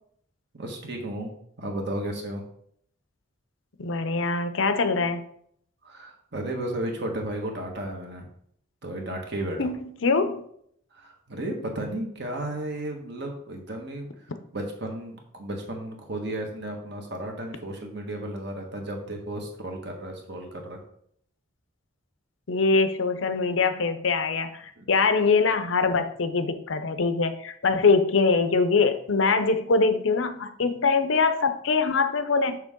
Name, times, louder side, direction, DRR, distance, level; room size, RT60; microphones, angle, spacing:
voice 1, 0.5-1.3 1.6-2.4 5.8-8.3 8.8-9.7 10.9-14.1 14.5-20.8 24.8-24.9, right 1 dB, 55° right, 2 dB, 1.4 m, -33 dB
voice 2, 3.8-5.2 9.6-10.4 22.5-24.6 24.9-32.6, left 4 dB, 65° left, 10 dB, 0.6 m, -23 dB
6.4 x 6.3 x 3.7 m, 0.67 s
head